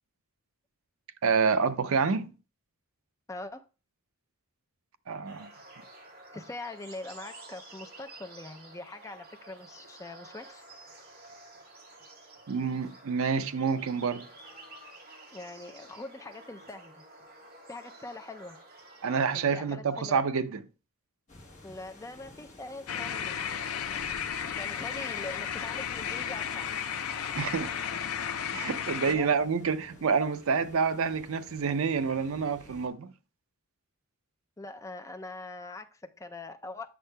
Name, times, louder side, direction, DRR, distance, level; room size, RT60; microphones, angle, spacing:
voice 1, 1.2-2.3 5.1-5.5 12.5-14.2 19.0-20.6 27.4-27.7 28.5-33.1, right 5 dB, 65° right, 0.5 m, -28 dB
voice 2, 3.3-3.6 6.3-10.6 15.3-17.0 17.7-18.6 19.3-20.2 21.6-23.6 24.4-26.7 29.0-29.3 34.6-36.9, left 2 dB, 15° left, 0.4 m, -43 dB
sound 1, 5.2-19.5, right 2 dB, 40° right, 2.2 m, -51 dB
sound 2, 21.3-32.9, left 2 dB, 35° left, 1.2 m, -52 dB
sound 3, 22.9-29.1, left 8 dB, 70° left, 0.5 m, -34 dB
8.1 x 6.3 x 2.2 m
head